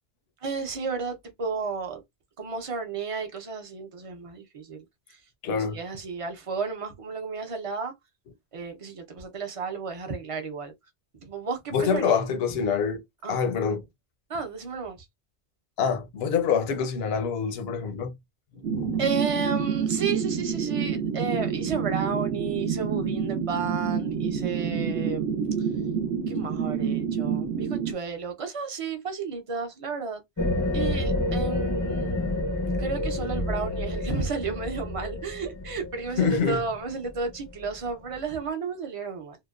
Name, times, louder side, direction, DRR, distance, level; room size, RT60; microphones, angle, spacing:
voice 1, 0.4-2.0 2.4-4.8 5.5-7.9 8.5-10.7 11.2-12.2 13.2-13.3 14.3-15.0 19.0-25.3 26.3-30.2 30.7-32.3 32.8-39.4, right 5 dB, 40° right, 0.5 m, -32 dB
voice 2, 5.4-5.8 11.7-13.9 15.8-18.1 18.5-19.0 36.2-36.6, left 6 dB, 70° left, 0.8 m, -26 dB
sound 1, 18.6-27.9, right 7 dB, 85° right, 0.9 m, -28 dB
sound 2, 30.4-37.6, left 1 dB, 30° left, 0.4 m, -29 dB
2.8 x 2.1 x 2.2 m
omnidirectional pair, 1.1 m